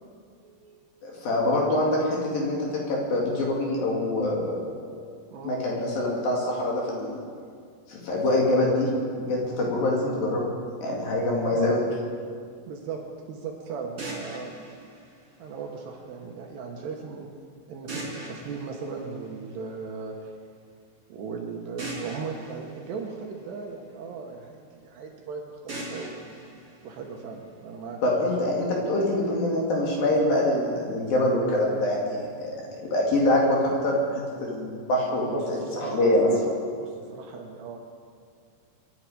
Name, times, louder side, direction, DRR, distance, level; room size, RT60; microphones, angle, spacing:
voice 1, 0.4-0.8 5.3-5.8 11.5-11.7 12.7-13.0 13.3-14.5 15.4-17.3 17.7-20.3 21.1-26.1 26.8-28.6 35.3-36.1 36.5-37.8, right 5 dB, 70° right, 1 dB, 3.1 m, -37 dB
voice 2, 1.0-4.6 5.4-7.2 7.9-8.9 9.2-10.5 10.8-11.8 28.0-32.5 32.9-36.3, left 1 dB, 55° left, -3 dB, 3.6 m, -25 dB
sound 1, 14.0-16.0 17.9-19.8 21.8-24.0 25.7-27.7, right 2 dB, 25° right, 4.1 m, -40 dB
26.5 x 11.0 x 5.0 m, 2.1 s
omnidirectional pair, 5.6 m